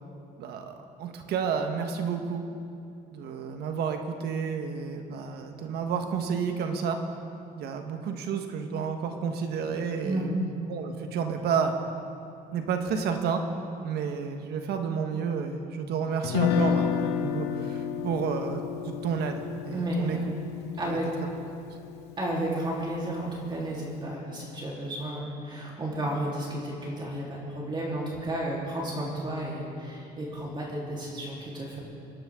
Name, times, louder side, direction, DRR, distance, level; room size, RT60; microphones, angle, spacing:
voice 1, 0.4-2.4 3.1-7.0 7.6-10.4 10.7-11.7 12.5-13.4 13.8-20.3 20.8-21.0 21.7-21.8, right 6 dB, 70° right, 6 dB, 1.3 m, -31 dB
voice 2, 10.0-10.4 19.7-20.2 20.8-21.1 22.2-31.8, right 1 dB, 25° right, -4 dB, 3.5 m, -32 dB
Guitar, 16.2-22.4, left 8 dB, 80° left, 0.8 m, -31 dB
23.5 x 11.5 x 3.7 m, 2.6 s
cardioid pair, 110°, 17 cm